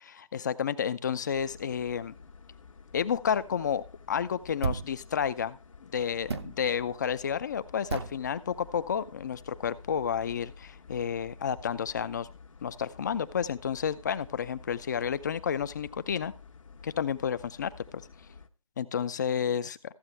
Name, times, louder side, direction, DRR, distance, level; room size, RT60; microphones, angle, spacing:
voice 1, 0.1-2.1 2.9-12.3 12.6-16.3 16.8-18.0 18.8-19.8, left 7 dB, 30° left, 15 dB, 0.6 m, -31 dB
sound 1, 1.3-18.5, left 5 dB, 65° left, 1.3 m, -52 dB
sound 2, 4.6-5.0 6.3-6.6 7.9-8.2, right 5 dB, 50° right, 0.8 m, -32 dB
14.5 x 8.0 x 3.2 m, 0.29 s
figure-of-eight pair, 155°, 18 cm